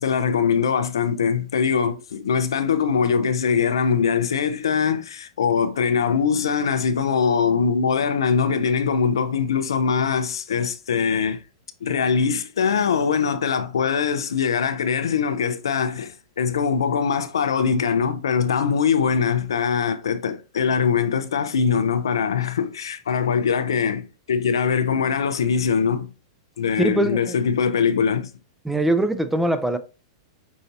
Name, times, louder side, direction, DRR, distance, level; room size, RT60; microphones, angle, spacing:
voice 1, 0.0-11.4 11.8-26.1 26.6-28.3, left 6 dB, 85° left, 0.5 m, -22 dB
voice 2, 26.8-27.4 28.6-29.8, right 1 dB, 5° right, 0.4 m, -22 dB
5.5 x 2.7 x 2.6 m
hypercardioid pair, 115°, 2 cm